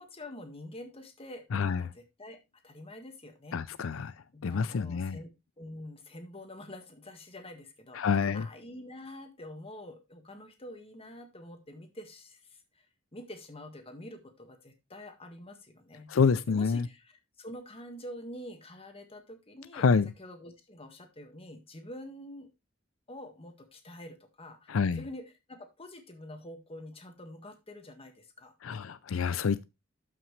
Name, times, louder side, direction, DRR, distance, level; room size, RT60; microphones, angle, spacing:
voice 1, 0.0-2.4 2.6-3.6 4.3-5.3 5.6-12.9 13.1-16.2 16.5-17.1 17.4-19.9 20.2-22.5 23.1-28.5, left 1 dB, 30° left, 1.7 m, -46 dB
voice 2, 1.5-1.8 3.5-4.1 4.4-5.2 7.9-8.5 16.1-16.9 19.7-20.1 24.7-25.0 28.6-29.6, left 5 dB, 85° left, 0.5 m, -27 dB
12.0 x 5.9 x 3.2 m
head